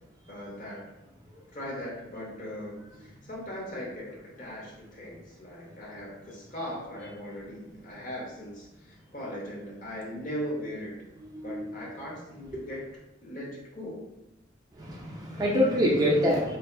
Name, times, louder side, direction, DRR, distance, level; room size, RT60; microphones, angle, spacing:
voice 1, 0.3-0.9 1.5-11.0 11.4-12.9 13.2-14.1, equal, 45° left, -3 dB, 0.6 m, -39 dB
voice 2, 11.3-11.6 12.5-12.6 14.8-16.6, equal, 20° right, -3 dB, 0.3 m, -25 dB
2.6 x 2.2 x 2.2 m, 0.92 s
head